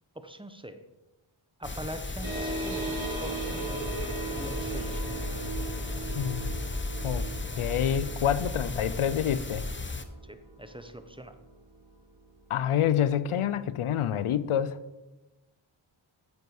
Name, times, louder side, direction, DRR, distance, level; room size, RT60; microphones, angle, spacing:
voice 1, 0.1-0.8 1.6-3.9 4.3-5.0 10.3-11.3, right 1 dB, 10° right, 0.9 m, -42 dB
sound 1, 1.6-10.0, left 2 dB, 25° left, 0.9 m, -35 dB
sound 2, 2.2-13.1, right 2 dB, 70° right, 3.2 m, -38 dB
voice 2, 6.1-6.6 7.0-7.2 7.6-9.6 12.5-14.8, left 9 dB, 80° left, 0.6 m, -27 dB
9.3 x 7.8 x 4.8 m
cardioid pair, 50°, 49 cm